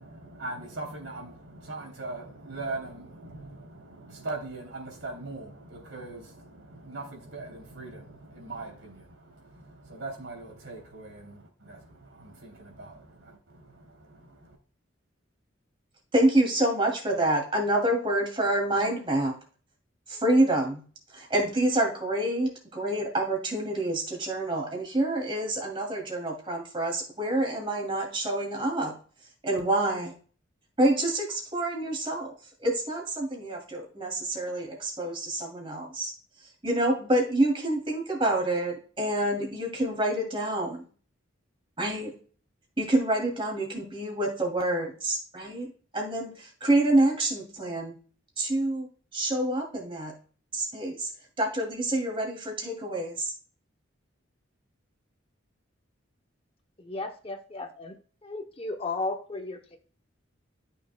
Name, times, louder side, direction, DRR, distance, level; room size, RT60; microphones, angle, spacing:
voice 1, 0.0-14.6, right 2 dB, 75° right, 1 dB, 3.1 m, -41 dB
voice 2, 16.1-19.3 20.1-20.8 21.1-28.9 29.4-30.1 30.8-32.3 32.6-36.1 36.6-40.9 41.8-42.1 42.8-47.9 48.4-50.1 50.5-51.1 51.4-53.3, right 1 dB, 25° right, 1 dB, 2.5 m, -27 dB
voice 3, 56.8-58.0 58.2-59.8, left 3 dB, 30° left, 5 dB, 0.8 m, -34 dB
13.0 x 6.4 x 2.2 m, 0.41 s
head